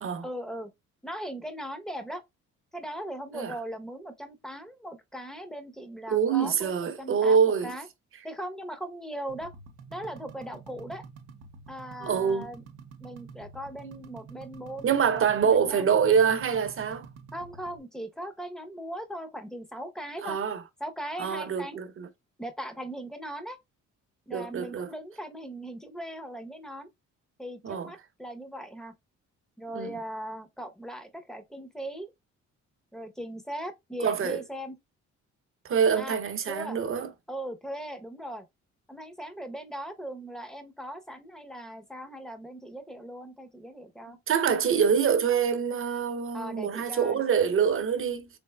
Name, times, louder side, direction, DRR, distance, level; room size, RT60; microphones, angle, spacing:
voice 1, 0.2-0.7 1.0-2.2 2.7-7.9 8.2-9.5 9.9-11.1 11.7-12.6 13.0-15.9 17.3-20.4 20.8-21.8 22.4-23.6 24.3-26.9 27.4-28.9 29.6-32.1 32.9-34.8 36.0-36.8 37.3-38.5 38.9-44.2 46.3-47.3, right 1 dB, ahead, 0.7 m, -39 dB
voice 2, 6.1-7.7 12.0-12.5 13.8-14.0 14.8-17.1 20.2-20.6 21.2-22.1 24.3-24.9 27.6-27.9 29.7-30.0 34.0-34.4 35.6-37.1 44.1-48.3, right 7 dB, 45° right, 0.7 m, -25 dB
sound 1, 9.3-17.8, right 5 dB, 90° right, 0.7 m, -48 dB
3.7 x 3.4 x 2.2 m
cardioid pair, 90°, 30 cm